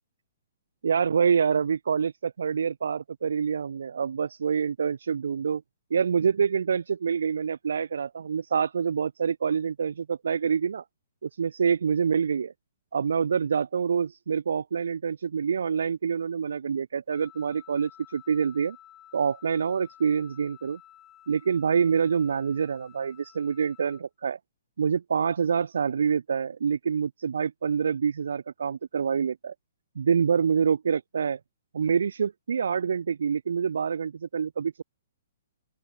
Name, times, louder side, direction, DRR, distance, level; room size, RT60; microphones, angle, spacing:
voice 1, 0.8-5.6 5.9-10.8 11.2-12.5 12.9-18.8 19.1-20.8 21.3-24.4 24.8-29.5 30.0-31.4 31.7-34.8, right 6 dB, 85° right, 0.4 m, -26 dB
Wind instrument woodwind instrument, 17.1-24.0, left 13 dB, 15° left, 2.4 m, -53 dB
open air
hypercardioid pair, 170°, 0 cm